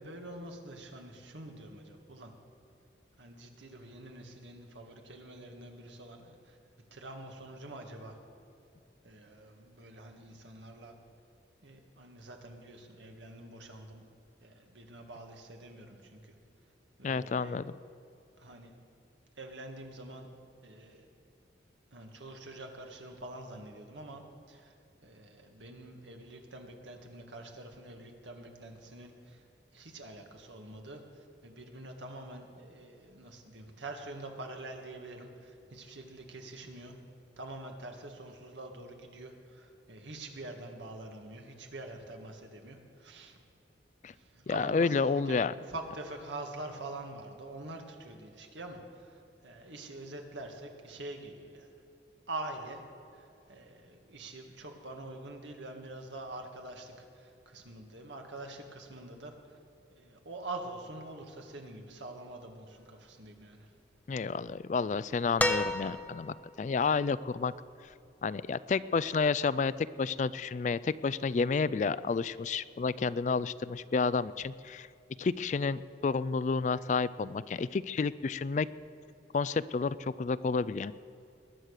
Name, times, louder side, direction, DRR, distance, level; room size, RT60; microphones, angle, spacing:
voice 1, 0.0-2.3 3.2-6.6 6.9-8.2 9.0-11.0 11.6-14.0 14.4-16.3 17.0-17.6 18.4-18.7 19.4-20.3 20.6-21.1 21.9-24.7 25.0-29.4 29.7-37.0 37.4-43.4 44.1-51.7 52.3-52.8 53.1-59.3 59.9-63.7, right 2 dB, 80° right, 3 dB, 1.9 m, -45 dB
voice 2, 17.0-17.7 44.0-44.1 44.5-45.5 64.1-67.5 68.2-69.7 70.0-74.9 75.2-78.7 79.3-80.9, left 4 dB, 40° left, 17 dB, 0.3 m, -30 dB
sound 1, 65.4-66.4 67.9-68.0, left 1 dB, 10° left, 0.7 m, -30 dB
21.0 x 9.1 x 6.6 m, 2.6 s
head